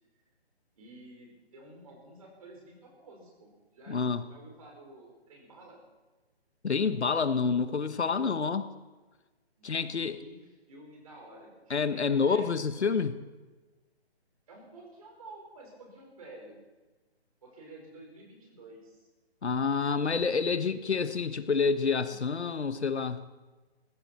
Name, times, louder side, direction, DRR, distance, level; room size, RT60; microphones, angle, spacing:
voice 1, 0.8-5.8 9.6-12.5 14.5-16.6 17.4-19.1, right 2 dB, 35° right, 0 dB, 4.9 m, -51 dB
voice 2, 3.9-4.2 6.6-8.7 9.6-10.2 11.7-13.2 19.4-23.2, left 5 dB, 90° left, 11 dB, 1.3 m, -28 dB
20.0 x 15.5 x 4.4 m, 1.2 s
hypercardioid pair, 175°, 33 cm